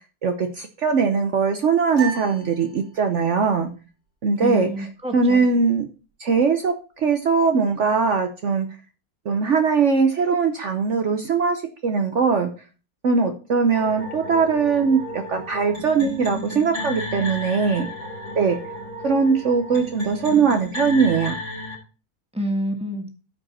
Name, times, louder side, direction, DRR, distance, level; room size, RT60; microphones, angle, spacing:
voice 1, 0.2-3.7 4.2-4.7 5.1-5.9 6.2-8.7 9.2-12.5 13.0-17.8 18.4-18.6 19.0-21.3, right 5 dB, 55° right, 6 dB, 1.1 m, -21 dB
sound 1, 1.9-3.4, right 6 dB, 75° right, 5.0 m, -35 dB
voice 2, 4.4-5.5 22.3-23.1, left 1 dB, 5° right, 4 dB, 1.5 m, -28 dB
sound 2, 13.7-21.8, left 1 dB, 70° left, 3.3 m, -33 dB
13.5 x 5.2 x 4.3 m, 0.35 s
omnidirectional pair, 1.6 m